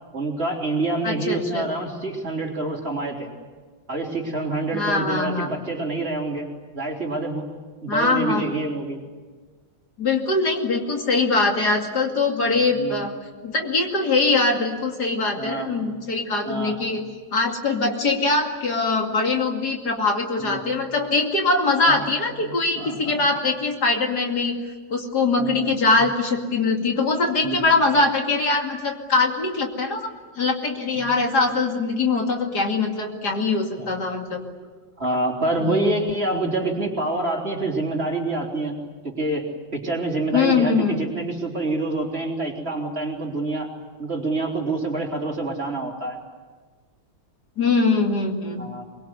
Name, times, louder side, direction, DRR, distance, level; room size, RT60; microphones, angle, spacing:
voice 1, 0.1-3.3 3.9-6.5 6.7-7.4 7.8-9.0 12.7-13.0 15.4-15.7 16.5-16.8 20.4-20.6 21.9-22.0 22.4-23.2 25.4-25.7 26.0-26.1 27.4-27.6 30.9-31.1 33.8-33.9 35.0-43.7 44.0-46.2 48.6-48.8, right 2 dB, 35° right, 0 dB, 3.9 m, -27 dB
voice 2, 1.0-1.7 4.7-5.6 7.9-8.5 10.0-13.2 13.4-17.0 17.3-24.6 24.9-30.1 30.4-34.4 35.7-36.1 40.3-41.0 47.6-48.7, left 3 dB, 60° left, 2 dB, 3.1 m, -22 dB
24.0 x 23.0 x 9.7 m, 1.4 s
omnidirectional pair, 1.9 m